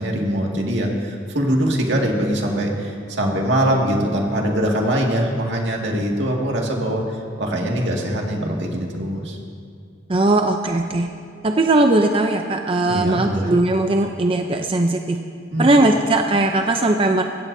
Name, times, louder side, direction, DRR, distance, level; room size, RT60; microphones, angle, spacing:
voice 1, 0.0-9.4 12.9-13.5 15.5-15.9, equal, 75° right, 0 dB, 2.1 m, -22 dB
voice 2, 10.1-11.1 11.4-15.2 15.6-17.2, right 2 dB, 30° right, 4 dB, 0.6 m, -18 dB
22.5 x 16.5 x 2.7 m, 2.3 s
head